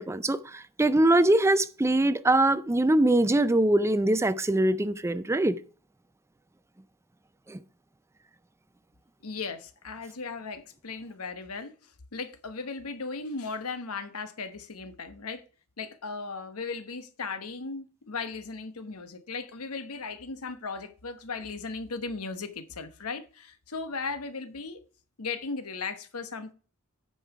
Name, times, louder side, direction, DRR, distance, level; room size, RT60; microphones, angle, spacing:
voice 1, 0.0-5.6 7.5-7.6, right 1 dB, 10° right, 0.4 m, -23 dB
voice 2, 9.2-11.7 12.1-15.4 15.8-24.8 25.2-26.5, left 4 dB, 90° left, 1.1 m, -37 dB
9.3 x 5.6 x 4.7 m
head